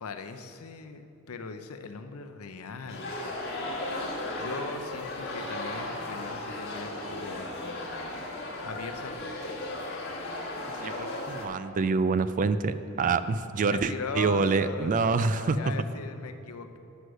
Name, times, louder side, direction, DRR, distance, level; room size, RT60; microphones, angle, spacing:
voice 1, 0.0-3.1 4.3-7.8 8.6-9.3 13.7-16.8, left 4 dB, 80° left, 8 dB, 0.6 m, -39 dB
sound 1, 2.9-11.5, left 2 dB, 60° left, 1.4 m, -36 dB
voice 2, 10.8-15.6, right 4 dB, 40° right, 12 dB, 0.3 m, -26 dB
8.1 x 6.3 x 6.2 m, 2.7 s
head